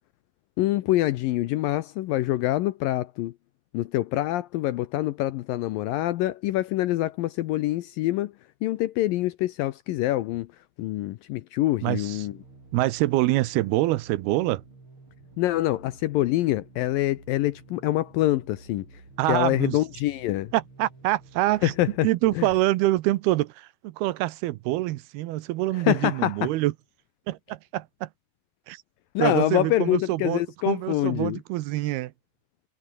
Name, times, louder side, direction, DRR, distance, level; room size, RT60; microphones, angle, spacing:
voice 1, 0.6-3.3 3.7-8.3 8.6-10.5 10.8-12.4 15.4-18.9 19.3-20.5 21.6-22.1 22.4-22.5 25.8-26.5 29.1-31.4, left 15 dB, 80° left, 2.2 m, -25 dB
voice 2, 11.8-12.3 12.7-14.6 19.2-19.8 20.5-21.7 22.0-26.7 27.3-28.1 28.7-28.8 29.2-30.4 30.7-32.1, right 17 dB, 80° right, 2.7 m, -25 dB
sound 1, 11.9-22.6, right 3 dB, 30° right, 6.6 m, -51 dB
omnidirectional pair, 4.7 m